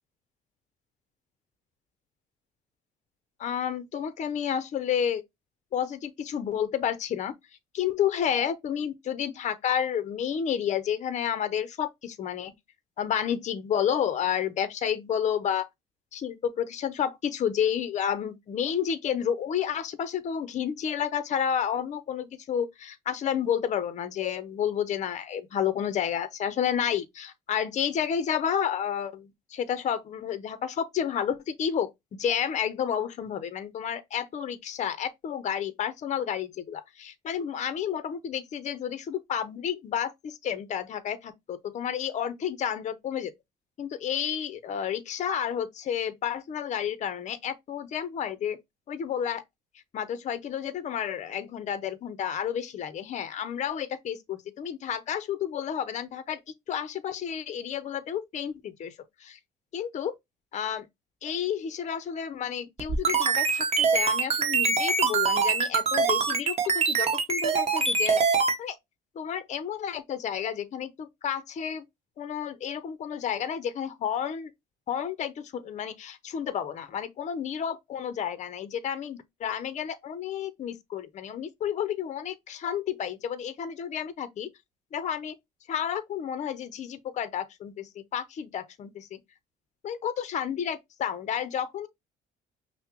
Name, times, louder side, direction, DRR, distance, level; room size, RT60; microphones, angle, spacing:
voice 1, 3.4-5.2 5.7-7.3 7.7-12.5 13.0-15.7 16.1-31.9 32.2-43.3 43.8-48.6 48.9-49.4 49.9-56.4 56.7-58.9 59.2-59.4 59.7-60.1 60.5-60.9 61.2-68.2 68.6-68.8 69.2-71.8 72.2-74.5 74.9-84.5 84.9-85.3 85.7-89.2 89.8-91.9, left 8 dB, 45° left, 0.6 m, -31 dB
sound 1, 62.8-68.6, right 5 dB, 40° right, 1.0 m, -24 dB
5.6 x 2.1 x 2.9 m
cardioid pair, 110°, 17 cm